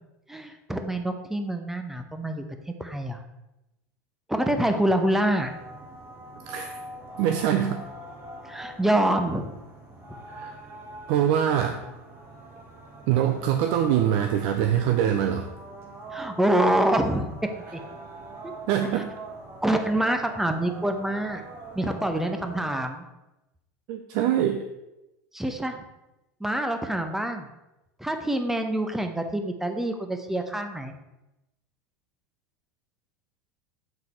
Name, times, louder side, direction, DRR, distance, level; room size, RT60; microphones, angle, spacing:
voice 1, 0.3-2.4 2.8-3.2 4.3-5.5 8.4-9.5 16.1-17.3 17.7-17.8 19.6-21.4 21.7-23.0 25.3-25.8 26.4-27.5 28.0-30.9, right 1 dB, 5° right, 6 dB, 0.7 m, -26 dB
sound 1, 4.9-22.8, right 2 dB, 30° right, 1.5 m, -43 dB
voice 2, 6.5-6.8 7.2-7.8 10.3-10.6 11.1-11.8 13.1-15.5 18.7-19.1 23.9-24.7, right 10 dB, 60° right, 6 dB, 0.5 m, -24 dB
6.8 x 3.9 x 4.2 m, 0.95 s
hypercardioid pair, 95°, 9 cm